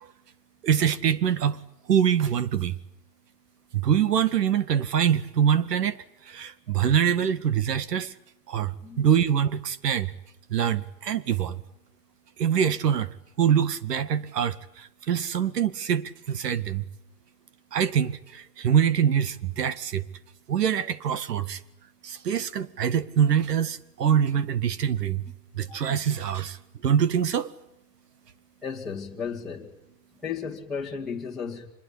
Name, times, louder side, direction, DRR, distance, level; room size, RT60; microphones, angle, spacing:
voice 1, 0.6-1.6 1.9-2.8 3.7-8.1 8.5-10.1 10.5-11.6 12.4-16.8 17.7-20.1 20.5-21.6 22.0-25.3 25.5-26.6 26.8-27.5, right 8 dB, 80° right, 2.0 m, -24 dB
voice 2, 28.6-29.7 30.2-31.7, left 6 dB, ahead, 2.4 m, -34 dB
25.0 x 22.0 x 8.6 m
supercardioid pair, 180°, 47 cm